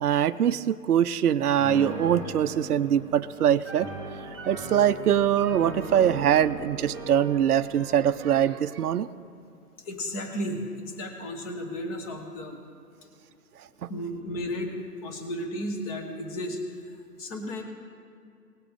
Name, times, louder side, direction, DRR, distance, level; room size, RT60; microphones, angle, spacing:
voice 1, 0.0-3.9 4.5-9.1 13.8-13.9, right 10 dB, 70° right, 12 dB, 0.6 m, -23 dB
Piano, 1.6-8.5, right 2 dB, 5° right, 2.2 m, -38 dB
voice 2, 9.8-12.6 13.9-14.7 15.0-16.6 17.2-17.6, equal, 25° left, 4 dB, 1.3 m, -34 dB
19.5 x 8.2 x 3.7 m, 2.5 s
figure-of-eight pair, 145°, 47 cm